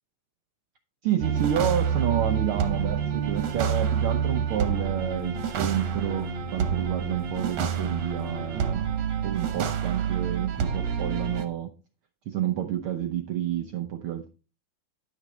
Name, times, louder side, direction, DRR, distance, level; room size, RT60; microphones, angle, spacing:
voice 1, 1.0-8.9 9.2-11.7 12.3-14.3, right 10 dB, 85° right, 7 dB, 1.2 m, -29 dB
sound 1, 1.2-11.4, right 7 dB, 65° right, 2.1 m, -28 dB
11.5 x 6.3 x 4.1 m, 0.33 s
omnidirectional pair, 3.3 m